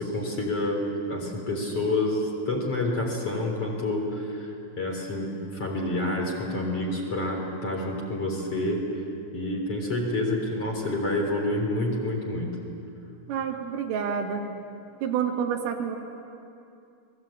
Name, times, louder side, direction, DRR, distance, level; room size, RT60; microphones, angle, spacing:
voice 1, 0.0-8.8 9.3-12.5, left 1 dB, 30° left, -1 dB, 4.1 m, -28 dB
voice 2, 13.3-14.4 15.0-16.0, right 7 dB, 85° right, 1 dB, 4.8 m, -28 dB
28.5 x 21.5 x 8.7 m, 2.6 s
omnidirectional pair, 5.8 m